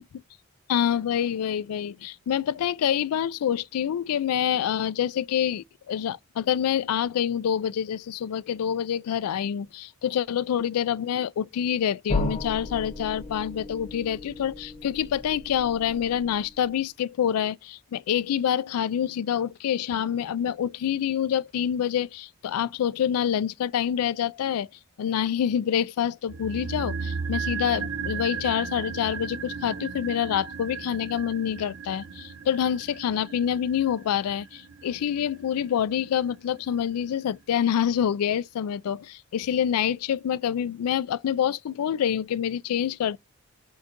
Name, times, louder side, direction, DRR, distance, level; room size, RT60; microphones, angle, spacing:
voice 1, 0.7-24.7 25.0-43.2, left 9 dB, 85° left, 0.3 m, -27 dB
sound 1, 12.1-16.8, left 2 dB, 30° left, 0.8 m, -34 dB
sound 2, 26.3-36.5 36.8-36.9, right 5 dB, 60° right, 0.6 m, -35 dB
4.4 x 3.8 x 2.5 m
head